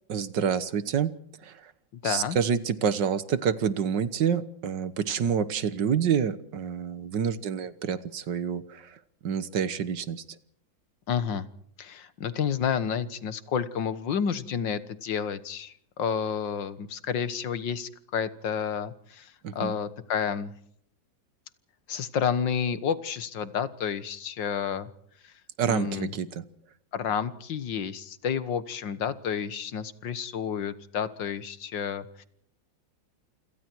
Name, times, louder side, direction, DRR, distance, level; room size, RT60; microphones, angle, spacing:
voice 1, 0.1-1.1 1.4-1.7 2.0-10.4 19.4-19.8 25.6-26.5, right 7 dB, 65° right, 14 dB, 1.8 m, -28 dB
voice 2, 2.0-2.4 11.1-11.5 11.8-20.5 21.9-24.9 25.2-25.3 25.7-26.1 26.9-32.2, left 7 dB, 70° left, 14 dB, 2.0 m, -30 dB
28.0 x 26.5 x 4.6 m, 0.67 s
omnidirectional pair, 2.1 m